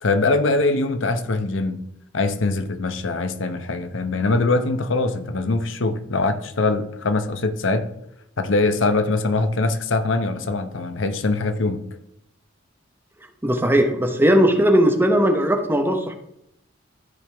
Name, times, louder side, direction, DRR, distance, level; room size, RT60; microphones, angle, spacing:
voice 1, 0.0-1.8 2.1-7.9 8.4-11.8, left 3 dB, 65° left, 9 dB, 0.8 m, -22 dB
voice 2, 13.4-16.1, equal, 10° right, 4 dB, 1.0 m, -18 dB
13.0 x 5.3 x 3.5 m, 0.76 s
head